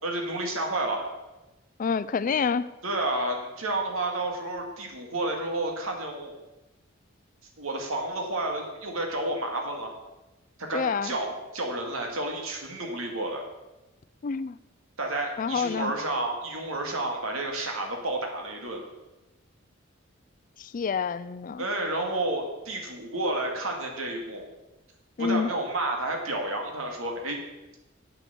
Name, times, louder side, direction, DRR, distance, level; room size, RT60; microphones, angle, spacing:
voice 1, 0.0-1.1 2.8-6.4 7.6-9.9 10.6-13.4 15.0-18.8 21.6-24.5 25.2-27.4, right 2 dB, 85° right, 2 dB, 2.2 m, -30 dB
voice 2, 1.8-2.7 10.7-11.1 14.2-14.6 15.4-15.9 20.6-21.6 25.2-25.5, left 5 dB, 40° left, 15 dB, 0.4 m, -27 dB
8.4 x 7.3 x 6.8 m, 1.1 s
head